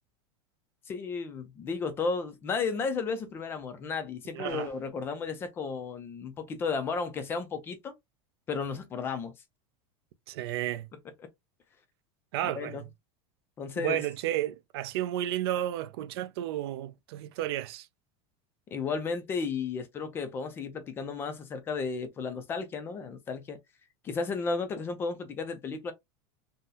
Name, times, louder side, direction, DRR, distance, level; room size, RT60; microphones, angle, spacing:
voice 1, 0.9-7.9 8.5-9.3 12.4-12.8 13.6-14.0 18.7-23.6 24.0-25.9, left 5 dB, 15° left, 0.3 m, -33 dB
voice 2, 4.3-4.7 10.3-10.9 12.3-12.8 13.8-17.9, right 13 dB, 60° right, 0.4 m, -32 dB
sound 1, 4.5-5.0, right 4 dB, 20° right, 0.8 m, -55 dB
3.7 x 2.0 x 2.7 m
supercardioid pair, 180°, 15 cm